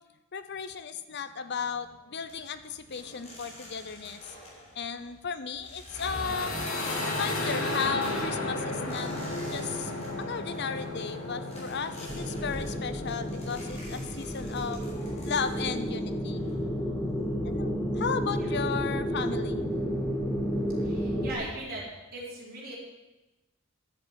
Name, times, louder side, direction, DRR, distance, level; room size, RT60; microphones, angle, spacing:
voice 1, 0.3-4.2 4.8-6.5 7.1-9.1 9.5-9.9 10.2-14.8 15.2-16.4 17.4-19.7, left 6 dB, 55° left, 11 dB, 0.8 m, -35 dB
sound 1, 2.3-17.3, left 1 dB, 35° left, 4.5 m, -49 dB
sound 2, 5.9-13.7, left 2 dB, 80° left, 2.6 m, -33 dB
sound 3, 12.1-21.3, equal, 15° left, 2.1 m, -31 dB
voice 2, 20.8-21.8 22.1-22.7, right 2 dB, 45° right, -5 dB, 4.3 m, -39 dB
11.0 x 8.0 x 7.5 m, 1.0 s
head